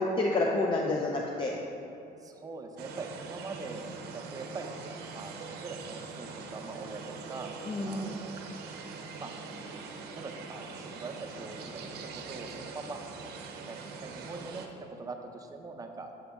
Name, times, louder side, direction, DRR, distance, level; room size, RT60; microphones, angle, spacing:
voice 1, 0.0-1.6 7.7-8.2, left 2 dB, 30° left, 0 dB, 0.4 m, -29 dB
voice 2, 2.2-3.8 4.1-4.7 5.1-7.5 7.8-8.4 9.2-9.3 10.1-13.0 13.6-16.1, right 3 dB, 20° right, 4 dB, 0.5 m, -43 dB
sound 1, 2.8-14.7, right 4 dB, 70° right, 0.6 m, -43 dB
7.1 x 3.9 x 3.5 m, 2.8 s
cardioid pair, 110°, 17 cm